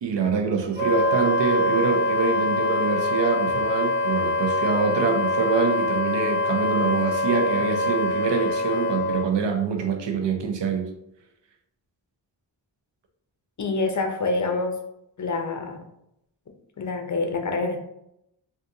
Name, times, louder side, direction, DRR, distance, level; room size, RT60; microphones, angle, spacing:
voice 1, 0.0-10.9, right 5 dB, 75° right, 0.6 m, -25 dB
Wind instrument woodwind instrument, 0.7-9.3, left 2 dB, 20° right, 0.9 m, -24 dB
voice 2, 13.6-14.8 15.2-15.8 16.8-17.8, left 3 dB, 45° left, 0.5 m, -26 dB
3.8 x 2.5 x 2.6 m
wide cardioid pair, 105°, 43 cm